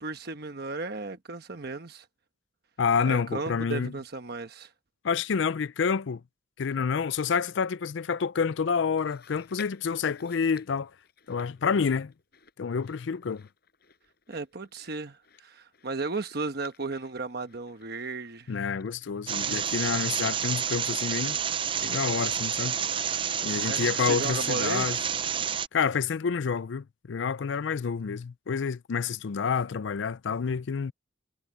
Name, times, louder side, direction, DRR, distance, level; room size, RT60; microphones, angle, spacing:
voice 1, 0.0-2.1 3.1-4.7 14.3-18.5 23.5-24.9, right 3 dB, 55° right, 1.1 m, -35 dB
voice 2, 2.8-3.9 5.0-6.2 6.6-10.9 11.3-12.1 12.6-13.5 18.5-21.4 21.8-22.8 23.4-25.0 25.7-30.9, left 6 dB, 70° left, 0.4 m, -28 dB
Chewing mastication, 9.0-22.5 22.8-22.9 23.8-23.9, left 6 dB, 55° left, 6.9 m, -56 dB
sound 1, 19.3-25.7, right 8 dB, 25° right, 0.5 m, -29 dB
head